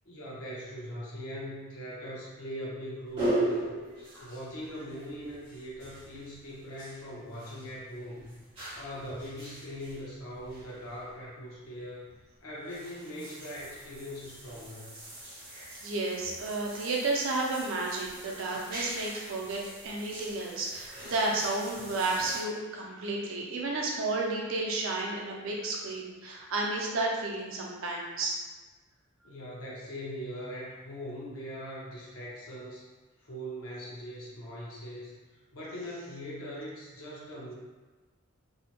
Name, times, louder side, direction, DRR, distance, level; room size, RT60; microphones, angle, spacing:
voice 1, 0.0-3.7 4.2-8.3 8.8-12.1 12.4-14.9 29.2-32.8 33.2-35.1 35.5-37.5, equal, 85° left, -6 dB, 0.8 m, -41 dB
sound 1, 3.1-11.1 11.9-12.2 12.6-22.4, right 1 dB, 25° right, 1.3 m, -40 dB
voice 2, 15.8-28.4, right 2 dB, 70° right, -2 dB, 0.5 m, -32 dB
2.7 x 2.1 x 2.8 m, 1.3 s
head